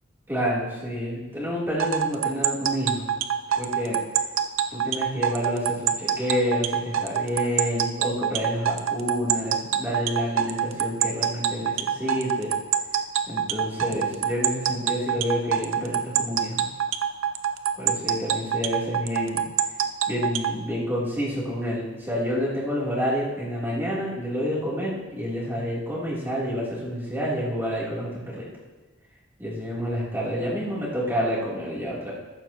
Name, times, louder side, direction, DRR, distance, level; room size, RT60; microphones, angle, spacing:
voice 1, 0.3-3.1 3.6-4.0 4.7-12.5 13.3-16.6 17.8-19.4 20.1-28.5 29.4-32.1, equal, 10° right, -6 dB, 3.3 m, -28 dB
sound 1, 1.8-20.5, right 9 dB, 80° right, 0.7 m, -24 dB
14.0 x 11.5 x 3.0 m, 1.2 s
head